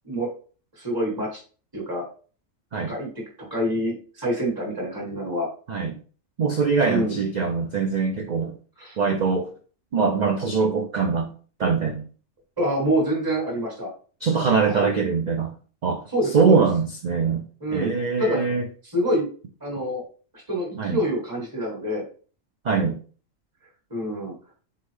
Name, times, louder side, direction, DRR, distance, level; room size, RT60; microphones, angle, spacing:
voice 1, 0.8-1.4 1.7-2.0 2.9-3.1 3.4-5.5 6.9-7.2 8.8-9.0 12.6-13.9 14.7-15.0 16.1-16.6 17.6-17.9 18.2-18.4 18.8-19.3 19.6-20.0 20.3-22.0 23.9-24.3, equal, 15° right, -2 dB, 1.3 m, -26 dB
voice 2, 5.7-6.0 6.4-8.5 9.0-9.5 9.9-11.3 11.6-12.0 14.2-15.5 15.8-16.0 16.3-17.4 17.7-18.6 20.8-21.0 22.6-23.0, right 5 dB, 60° right, 3 dB, 0.4 m, -22 dB
4.1 x 3.7 x 3.2 m, 0.40 s
omnidirectional pair, 1.4 m